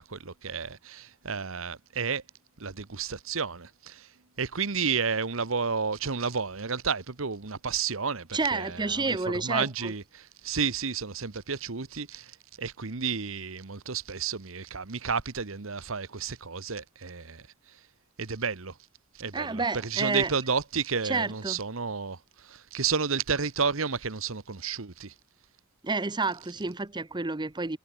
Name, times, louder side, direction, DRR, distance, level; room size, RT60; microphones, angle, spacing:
voice 1, 0.0-2.2 2.6-4.1 4.4-17.4 18.2-18.7 19.2-22.2 22.4-25.1, right 5 dB, 70° right, 1.3 m, -31 dB
voice 2, 8.3-9.9 19.3-20.3 21.0-21.6 25.8-27.8, right 3 dB, 20° right, 0.9 m, -30 dB
head